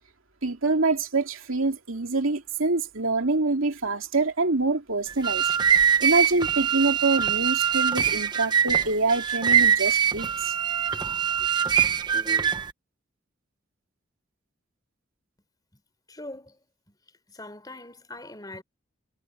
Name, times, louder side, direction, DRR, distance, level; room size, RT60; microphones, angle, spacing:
voice 1, 0.4-5.4 5.7-10.5, right 3 dB, 85° right, 2.6 m, -25 dB
sound 1, 5.1-12.7, right 8 dB, 20° right, 1.2 m, -23 dB
voice 2, 16.1-16.6 17.3-18.6, left 2 dB, 20° left, 4.1 m, -41 dB
head